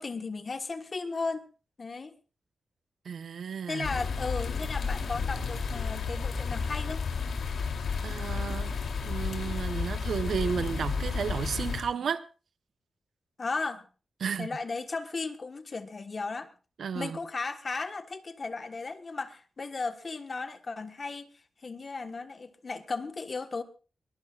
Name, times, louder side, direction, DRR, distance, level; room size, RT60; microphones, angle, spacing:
voice 1, 0.0-1.4 1.8-2.1 3.7-7.0 13.4-13.8 14.4-16.5 16.9-21.3 21.6-23.6, left 4 dB, 35° left, 1.5 m, -35 dB
voice 2, 3.0-3.9 8.0-12.2 14.2-14.5 16.8-17.2, right 6 dB, 80° right, 1.1 m, -33 dB
sound 1, 3.8-11.8, left 5 dB, 80° left, 3.2 m, -32 dB
22.5 x 21.5 x 2.5 m
wide cardioid pair, 160°, 0 cm